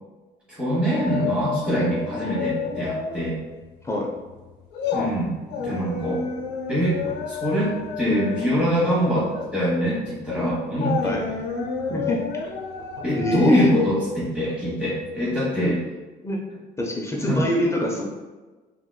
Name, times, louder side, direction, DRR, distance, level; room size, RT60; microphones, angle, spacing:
voice 1, 0.5-3.3 4.9-6.3 6.7-7.0 7.3-11.0 13.0-15.8 17.3-17.5, equal, 5° right, -9 dB, 1.2 m, -24 dB
sound 1, 0.9-3.4 3.7-3.9 4.3-15.3 15.6-15.7, left 5 dB, 85° left, 0.6 m, -31 dB
voice 2, 11.9-12.2 13.1-13.7 16.2-16.4 16.8-18.0, left 1 dB, 15° left, -2 dB, 0.6 m, -24 dB
4.7 x 3.7 x 2.2 m, 1.2 s
cardioid pair, 110°, 17 cm